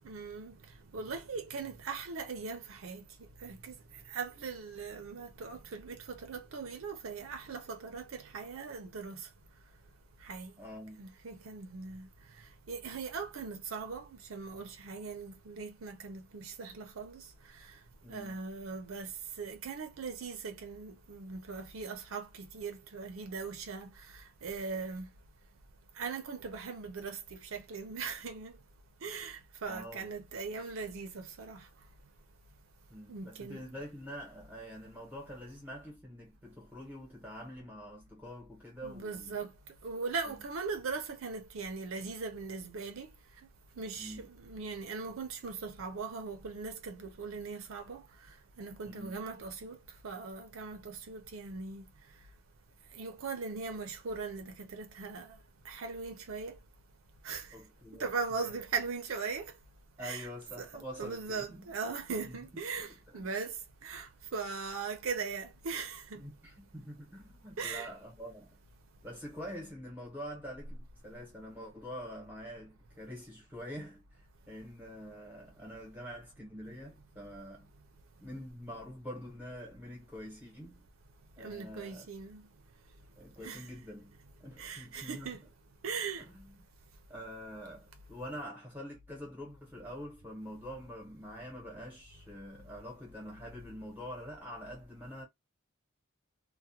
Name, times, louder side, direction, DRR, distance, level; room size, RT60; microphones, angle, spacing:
voice 1, 0.0-0.6 0.9-3.0 3.4-3.8 4.1-9.2 10.2-10.5 11.0-12.1 12.7-17.2 18.1-19.1 19.4-23.9 24.4-25.1 26.0-28.5 29.0-31.6 33.1-33.8 38.8-39.5 39.8-43.1 43.8-48.0 48.6-49.8 50.0-51.8 53.0-55.4 55.7-56.6 57.2-57.5 58.0-59.5 60.0-60.3 60.6-63.6 63.8-66.2 67.6-67.9 81.4-82.4 83.4-83.7 84.6-85.4 85.8-86.2, right 4 dB, 85° right, 0.5 m, -39 dB
voice 2, 10.6-11.1 18.0-18.4 29.7-30.1 32.9-39.4 40.3-40.4 44.0-44.2 48.8-49.2 57.5-58.1 58.4-58.5 60.0-61.7 62.2-62.4 63.1-63.3 66.2-68.6 69.0-77.7 78.2-80.9 81.4-82.1 83.2-84.2 84.4-85.3 86.2-86.5 87.1-95.2, equal, 10° right, 0.9 m, -46 dB
2.3 x 2.1 x 2.7 m
head